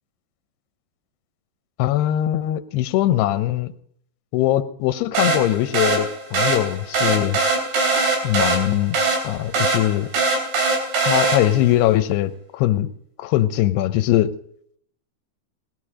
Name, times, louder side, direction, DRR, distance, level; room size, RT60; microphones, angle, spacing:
voice 1, 1.8-3.7 4.3-7.4 8.2-9.0 9.2-10.1 11.1-12.9 13.2-14.3, left 13 dB, 85° left, 13 dB, 2.8 m, -21 dB
sound 1, 5.1-11.7, right 3 dB, 80° right, 5.7 m, -22 dB
19.5 x 12.5 x 5.0 m, 0.66 s
omnidirectional pair, 4.6 m